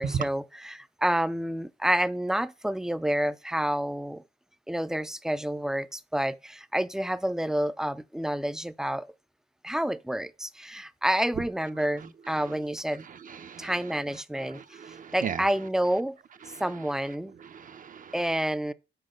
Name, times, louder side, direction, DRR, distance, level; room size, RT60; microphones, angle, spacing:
voice 1, 0.0-4.2 4.7-9.1 9.6-13.0 13.6-14.6 15.1-16.2 16.6-17.3 18.1-18.7, right 1 dB, 5° right, 0.4 m, -29 dB
voice 2, 13.3-13.7 14.5-15.4 16.5-16.6 17.5-18.1, right 7 dB, 45° right, 0.7 m, -35 dB
5.9 x 4.8 x 6.5 m
cardioid pair, 90°, 20 cm